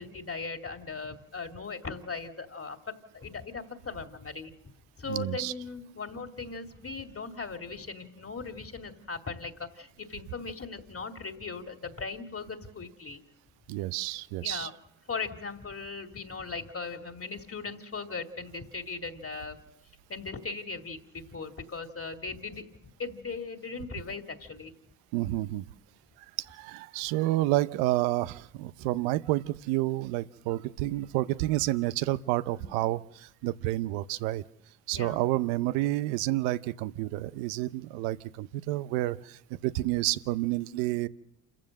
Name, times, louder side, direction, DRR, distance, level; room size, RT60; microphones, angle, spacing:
voice 1, 0.0-4.5 5.0-13.2 14.3-14.7 15.1-19.6 20.1-22.7 23.0-24.7 32.6-32.7 34.9-35.2, left 4 dB, 30° left, 5 dB, 2.5 m, -38 dB
voice 2, 5.1-5.5 13.7-14.7 25.1-25.6 26.4-34.4 34.9-41.1, right 16 dB, 85° right, 16 dB, 0.7 m, -29 dB
28.0 x 15.0 x 6.5 m, 0.82 s
hypercardioid pair, 55°, 43 cm